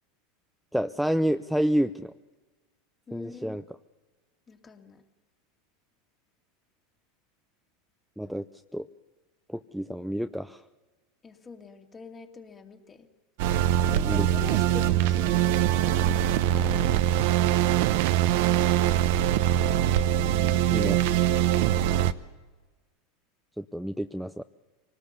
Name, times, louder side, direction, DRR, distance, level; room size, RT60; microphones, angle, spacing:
voice 1, 0.7-2.1 3.1-3.6 8.2-8.5 8.7-8.9 9.5-10.6 14.0-14.3 20.7-21.0 23.6-24.4, equal, ahead, 10 dB, 0.6 m, -29 dB
voice 2, 3.1-3.6 4.5-5.0 11.2-13.1 13.9-15.5 15.8-16.2 16.5-17.2 18.3-19.0 21.8-22.2, left 5 dB, 25° left, 4 dB, 2.6 m, -44 dB
sound 1, 13.4-22.1, right 11 dB, 65° right, 0.9 m, -23 dB
25.0 x 19.0 x 6.8 m, 1.3 s
hypercardioid pair, 95°, 0 cm